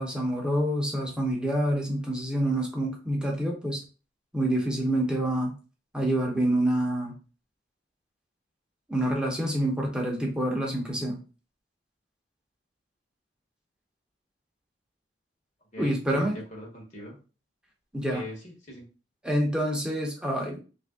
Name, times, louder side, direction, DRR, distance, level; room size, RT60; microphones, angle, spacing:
voice 1, 0.0-3.8 4.3-5.5 5.9-7.1 8.9-11.2 15.8-16.3 17.9-18.2 19.2-20.6, right 1 dB, 5° right, -1 dB, 0.9 m, -27 dB
voice 2, 15.7-17.2 18.1-18.9, left 1 dB, 40° left, 0 dB, 1.2 m, -41 dB
3.4 x 2.6 x 3.5 m, 0.34 s
head